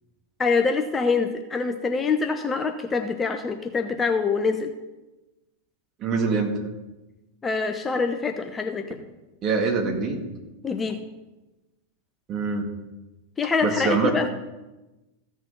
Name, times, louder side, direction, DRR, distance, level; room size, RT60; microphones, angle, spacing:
voice 1, 0.4-4.7 7.4-9.0 10.6-11.0 13.4-14.3, left 4 dB, 15° left, 6 dB, 0.7 m, -25 dB
voice 2, 6.0-6.6 9.4-10.2 12.3-12.7 13.6-14.2, right 4 dB, 30° right, 2 dB, 1.9 m, -24 dB
14.5 x 6.3 x 5.2 m, 1.1 s
figure-of-eight pair, 90°, 0 cm